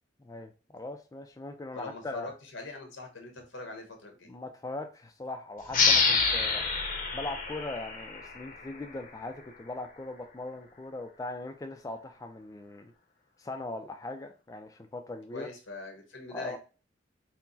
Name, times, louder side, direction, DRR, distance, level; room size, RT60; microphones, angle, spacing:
voice 1, 0.2-2.3 4.2-6.7 7.1-12.9 13.4-15.5 16.3-16.6, left 2 dB, 20° left, 0.3 m, -40 dB
voice 2, 1.7-4.3 15.3-16.6, left 3 dB, 85° left, 1.2 m, -42 dB
sound 1, 5.7-9.0, left 4 dB, 45° left, 0.7 m, -27 dB
4.4 x 2.1 x 3.9 m
head